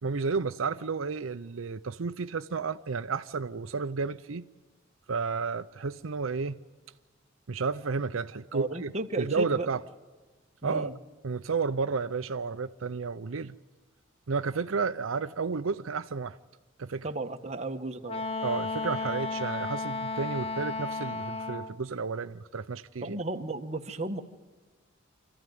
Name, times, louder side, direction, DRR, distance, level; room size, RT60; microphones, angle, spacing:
voice 1, 0.0-4.4 5.1-6.6 7.5-8.9 9.2-9.8 10.6-11.0 11.2-13.6 14.3-16.4 16.8-17.1 18.4-23.2, right 4 dB, 85° right, 0.6 m, -32 dB
voice 2, 8.5-9.7 10.6-10.9 17.0-18.2 23.0-24.2, right 2 dB, 35° right, 1.4 m, -34 dB
Wind instrument woodwind instrument, 18.1-21.8, left 3 dB, 30° left, 1.0 m, -33 dB
26.0 x 14.5 x 9.4 m
head